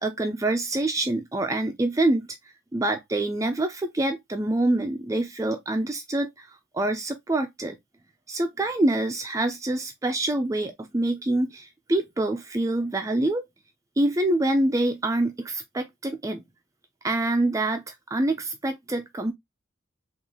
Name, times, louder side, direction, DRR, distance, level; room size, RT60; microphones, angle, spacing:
voice 1, 0.0-2.3 2.7-6.5 6.7-7.8 8.3-13.5 14.0-16.4 17.0-19.3, right 2 dB, 15° right, 0.4 m, -26 dB
3.8 x 2.4 x 2.8 m
head